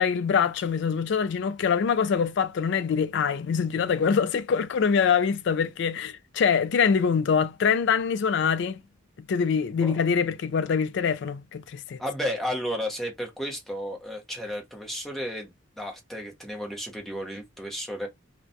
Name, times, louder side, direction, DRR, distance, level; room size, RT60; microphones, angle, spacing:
voice 1, 0.0-8.8 9.2-12.0, left 6 dB, 60° left, 0.3 m, -24 dB
voice 2, 12.0-15.5 15.8-18.1, equal, ahead, 0.7 m, -33 dB
2.3 x 2.1 x 2.6 m
head